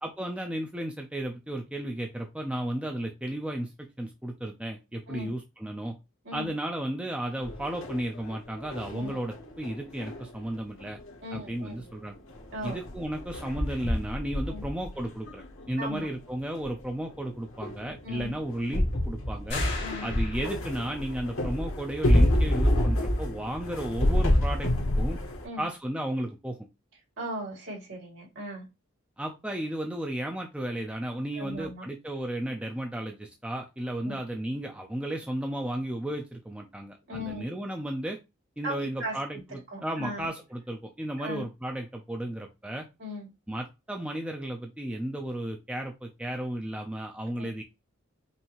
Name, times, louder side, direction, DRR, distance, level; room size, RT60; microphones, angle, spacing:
voice 1, 0.0-6.0 6.3-11.0 11.3-12.1 12.6-19.6 20.0-24.7 25.0-25.2 25.6-26.6 29.2-38.2 38.6-42.9 43.5-47.6, right 1 dB, 5° right, 3 dB, 0.4 m, -34 dB
sound 1, 7.4-11.1 11.5-11.6 11.8-11.9 12.3-16.2 16.6-16.8 17.2-25.4, left 1 dB, 75° left, 1.2 m, -28 dB
voice 2, 11.2-11.8 12.5-12.8 14.5-14.6 15.8-16.1 18.0-18.3 19.8-20.1 25.4-25.7 27.2-28.7 31.3-31.8 34.0-34.2 37.1-37.5 38.6-39.2 39.7-40.3 41.2-41.4 43.0-43.3 47.4-47.5, equal, 60° right, -2 dB, 2.7 m, -37 dB
sound 2, 19.5-21.0, left 4 dB, 55° left, 1.8 m, -37 dB
5.5 x 2.7 x 3.0 m, 0.24 s
head